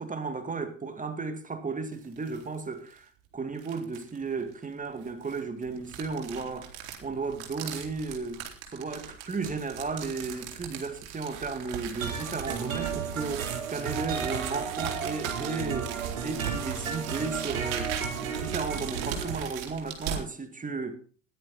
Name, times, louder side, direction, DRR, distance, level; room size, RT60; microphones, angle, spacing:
voice 1, 0.0-6.7 7.0-8.4 8.7-16.0 16.2-17.9 18.2-20.9, right 4 dB, 20° right, 2.1 m, -34 dB
sound 1, 1.9-2.5 2.9-3.0 3.6-4.2 5.0-20.2, right 8 dB, 60° right, 3.7 m, -39 dB
sound 2, 12.0-19.4, right 6 dB, 80° right, 3.0 m, -34 dB
16.5 x 11.5 x 4.1 m
hypercardioid pair, 75°, 40 cm